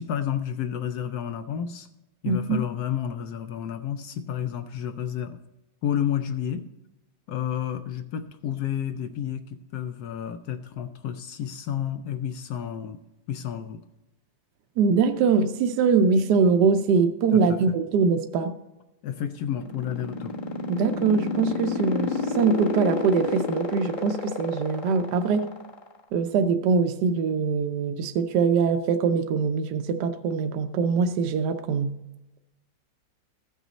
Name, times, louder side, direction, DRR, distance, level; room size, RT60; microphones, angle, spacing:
voice 1, 0.0-1.9 2.2-5.4 5.8-6.6 7.3-13.0 13.3-13.8 17.3-17.4 19.0-20.3, left 9 dB, 70° left, 9 dB, 1.0 m, -30 dB
voice 2, 2.2-2.6 14.8-18.5 20.7-25.5 26.1-31.9, right 5 dB, 70° right, 7 dB, 1.1 m, -23 dB
sound 1, 19.3-26.0, left 5 dB, 30° left, 1.0 m, -29 dB
14.5 x 6.1 x 4.1 m, 0.95 s
omnidirectional pair, 2.0 m